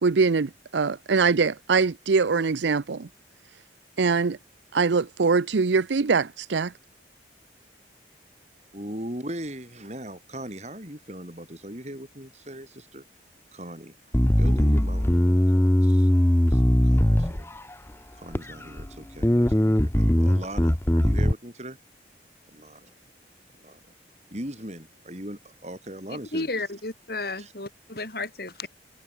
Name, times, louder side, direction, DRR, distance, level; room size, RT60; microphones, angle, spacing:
voice 1, 0.0-3.1 4.0-4.4 4.7-6.7, right 4 dB, 75° right, 0.6 m, -23 dB
voice 2, 8.7-13.0 13.5-13.9 14.4-16.1 16.5-17.5 18.1-21.8 22.5-22.9 23.6-23.8 24.3-26.5 27.4-27.5, right 1 dB, 35° right, 7.2 m, -39 dB
Bass guitar, 14.1-17.7 18.3-18.9 19.2-21.3, left 1 dB, 15° left, 0.7 m, -20 dB
voice 3, 26.3-28.7, left 2 dB, 55° left, 3.4 m, -32 dB
head